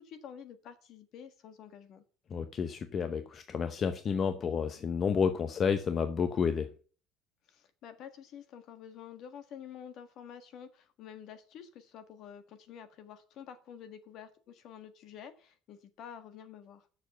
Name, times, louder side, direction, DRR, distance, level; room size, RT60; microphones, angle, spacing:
voice 1, 0.0-2.0 7.5-16.9, left 8 dB, 55° left, 10 dB, 1.5 m, -49 dB
voice 2, 2.3-6.7, left 6 dB, 35° left, 9 dB, 0.9 m, -30 dB
7.2 x 6.8 x 7.9 m, 0.39 s
cardioid pair, 135°, 0 cm